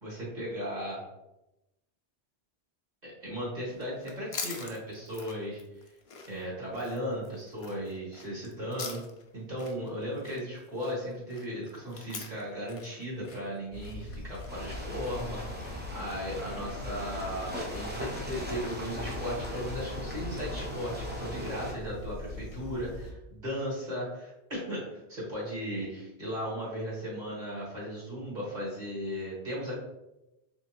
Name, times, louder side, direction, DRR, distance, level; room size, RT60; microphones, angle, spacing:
voice 1, 0.0-1.0 3.0-5.6 6.3-9.0 9.3-24.8 25.1-29.8, equal, 40° right, -6 dB, 1.8 m, -36 dB
sound 1, 3.7-15.9, left 5 dB, 55° left, 0.3 m, -45 dB
sound 2, 13.7-23.1, left 2 dB, 75° left, 0.9 m, -42 dB
sound 3, 14.5-21.7, equal, 15° right, 0.5 m, -39 dB
3.9 x 3.4 x 2.9 m, 0.92 s
omnidirectional pair, 1.1 m